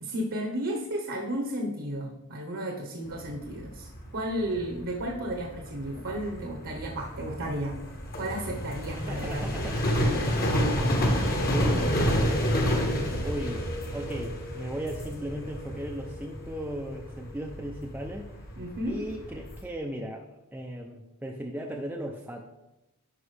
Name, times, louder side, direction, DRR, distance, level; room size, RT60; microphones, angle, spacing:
voice 1, 0.0-7.8 8.2-9.5 18.6-19.0, right 1 dB, 60° right, 1 dB, 1.1 m, -33 dB
sound 1, 3.0-19.6, equal, 45° left, 1.3 m, -30 dB
voice 2, 8.9-9.8 10.1-10.4 11.4-12.1 13.2-13.7 13.9-18.3 18.9-22.5, equal, 10° right, 0 dB, 0.5 m, -37 dB
10.0 x 5.3 x 3.3 m, 0.95 s
head